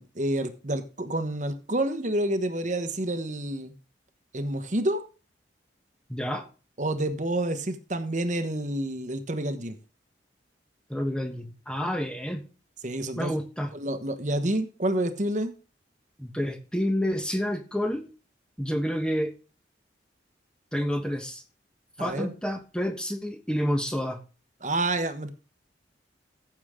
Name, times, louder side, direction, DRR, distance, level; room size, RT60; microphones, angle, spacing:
voice 1, 0.0-3.7 4.3-5.0 6.8-9.7 12.8-13.3 13.7-15.5 22.0-22.3 24.6-25.3, right 1 dB, 40° right, 10 dB, 1.2 m, -28 dB
voice 2, 6.1-6.5 10.9-12.4 13.1-13.7 16.2-18.1 18.6-19.3 20.7-21.4 22.0-24.2, equal, 5° left, 5 dB, 1.2 m, -29 dB
15.0 x 7.1 x 3.7 m, 0.35 s
head